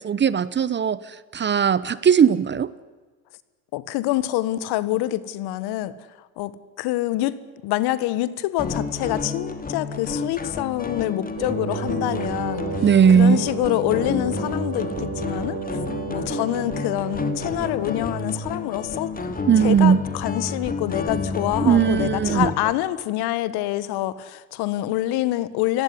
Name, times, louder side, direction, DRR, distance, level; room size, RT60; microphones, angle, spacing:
voice 1, 0.0-1.0 1.3-2.7 12.8-13.4 19.5-20.0 21.6-22.5, right 7 dB, 25° right, 18 dB, 1.0 m, -18 dB
voice 2, 3.7-15.6 16.1-19.1 19.6-25.8, left 15 dB, 60° left, 16 dB, 1.8 m, -26 dB
sound 1, 8.6-22.7, left 4 dB, 20° left, 2.8 m, -30 dB
Wind instrument woodwind instrument, 11.3-17.9, right 9 dB, 40° right, 3.3 m, -33 dB
29.5 x 18.0 x 9.8 m, 1.3 s
hypercardioid pair, 90°, 44 cm